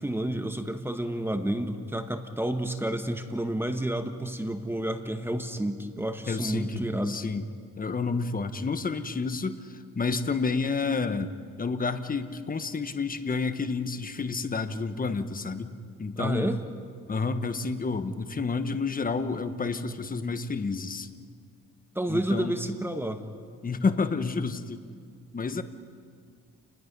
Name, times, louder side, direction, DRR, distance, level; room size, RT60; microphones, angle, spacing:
voice 1, 0.0-7.2 16.2-16.6 21.9-23.2, right 1 dB, 5° right, 7 dB, 1.5 m, -30 dB
voice 2, 6.3-7.4 7.8-11.3 11.6-16.5 17.1-21.1 22.1-22.6 23.6-24.8 25.3-25.6, left 4 dB, 30° left, 9 dB, 1.4 m, -30 dB
30.0 x 20.5 x 5.5 m, 2.1 s
cardioid pair, 90°, 30 cm